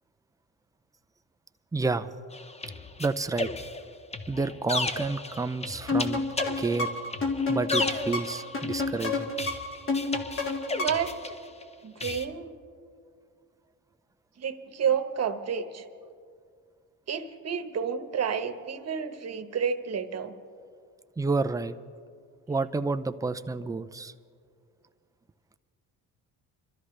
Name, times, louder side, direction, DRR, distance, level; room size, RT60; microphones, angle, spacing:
voice 1, 1.7-2.1 3.0-3.5 4.3-6.2 6.6-6.9 7.5-9.3 21.2-21.7 22.5-24.1, right 3 dB, 10° right, 10 dB, 0.4 m, -29 dB
sound 1, 2.3-11.6 12.0-12.2, left 2 dB, 20° left, 0.8 m, -35 dB
sound 2, 5.9-11.2, left 3 dB, 35° left, 2.0 m, -30 dB
voice 2, 10.8-11.2 11.8-12.6 14.4-15.9 17.1-20.3, right 7 dB, 45° right, 7 dB, 1.2 m, -30 dB
26.0 x 13.0 x 3.3 m, 2.2 s
cardioid pair, 100°, 36 cm